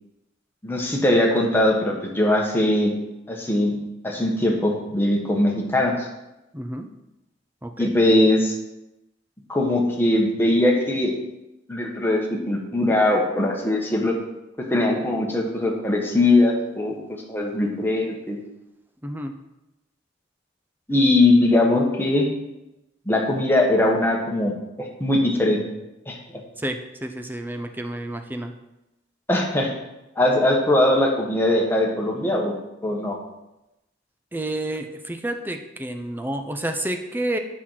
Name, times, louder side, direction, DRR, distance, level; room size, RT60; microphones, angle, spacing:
voice 1, 0.6-2.9 3.3-3.8 4.0-6.1 7.8-8.5 9.5-11.1 11.7-12.2 12.5-14.1 14.7-18.4 20.9-22.3 23.0-25.6 26.1-26.2 29.3-29.7 30.1-32.6 32.8-33.2, left 1 dB, 10° left, -1 dB, 1.7 m, -20 dB
voice 2, 6.5-6.9 7.6-7.9 19.0-19.3 26.6-28.5 34.3-37.4, right 1 dB, 10° right, 6 dB, 0.8 m, -30 dB
8.2 x 6.4 x 5.9 m, 0.94 s
head